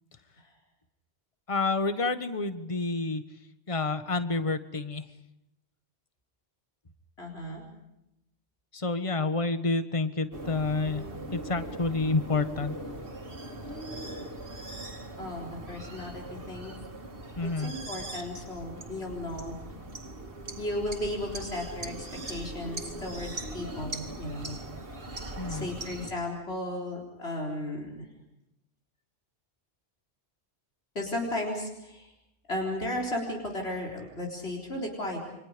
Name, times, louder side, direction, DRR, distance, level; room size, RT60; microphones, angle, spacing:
voice 1, 1.5-3.2 3.7-5.0 8.7-11.1 11.3-12.8 17.4-17.7 25.4-25.7, left 3 dB, 30° left, 10 dB, 1.4 m, -29 dB
voice 2, 7.2-7.6 15.2-16.7 17.4-19.6 20.6-24.6 25.5-28.0 30.9-32.1 32.5-35.2, left 1 dB, 70° left, 0 dB, 4.4 m, -35 dB
sound 1, 10.3-26.1, right 2 dB, 55° right, 2.5 m, -40 dB
29.5 x 25.5 x 5.2 m, 0.86 s
omnidirectional pair, 1.1 m